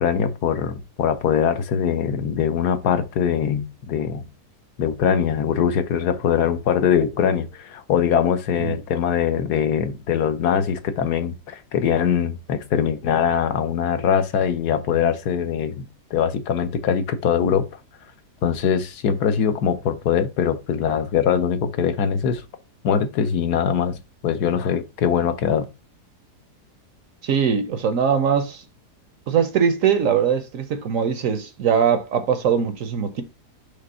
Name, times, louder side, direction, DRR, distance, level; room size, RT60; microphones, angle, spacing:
voice 1, 0.0-4.3 4.8-15.8 16.1-17.7 18.4-22.4 22.8-24.0 24.2-25.6, left 8 dB, 70° left, 1.3 m, -22 dB
voice 2, 27.2-28.6 29.3-33.2, right 7 dB, 65° right, 0.9 m, -21 dB
5.2 x 3.4 x 5.5 m
omnidirectional pair, 1.8 m